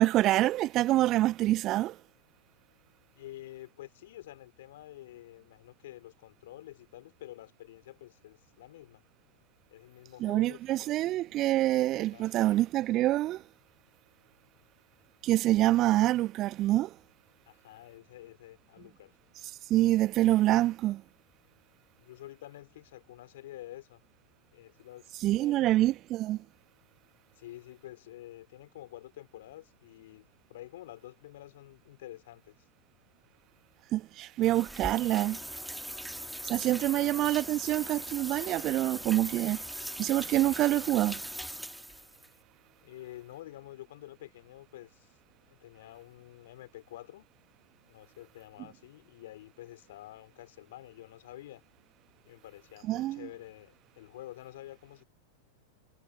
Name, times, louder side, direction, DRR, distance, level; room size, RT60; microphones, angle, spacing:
voice 1, 0.0-2.0 10.2-13.4 15.2-16.9 19.4-21.0 25.2-26.4 33.9-35.4 36.4-39.6 40.0-41.2 52.9-53.3, right 15 dB, 35° right, 1.1 m, -26 dB
voice 2, 3.1-9.0 9.7-11.2 12.0-12.5 17.5-19.1 22.0-24.0 24.5-25.9 27.4-32.6 36.9-37.3 42.8-45.2 45.5-47.3 47.9-51.6 52.2-55.0, left 14 dB, 55° left, 3.8 m, -49 dB
sound 1, 34.4-42.3, right 1 dB, ahead, 1.5 m, -40 dB
figure-of-eight pair, 90°, 0 cm